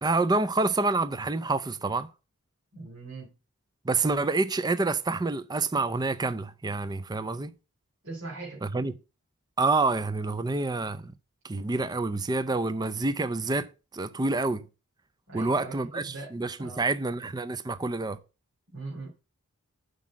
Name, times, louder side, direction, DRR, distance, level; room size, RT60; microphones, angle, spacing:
voice 1, 0.0-2.1 3.9-7.5 8.6-8.9 9.6-11.1 11.4-14.6 15.3-18.2, right 3 dB, 20° right, 0.4 m, -28 dB
voice 2, 2.7-3.3 8.0-8.6 15.3-16.3 16.6-16.8 18.7-19.1, right 3 dB, 60° right, 3.3 m, -40 dB
7.4 x 5.3 x 7.4 m
head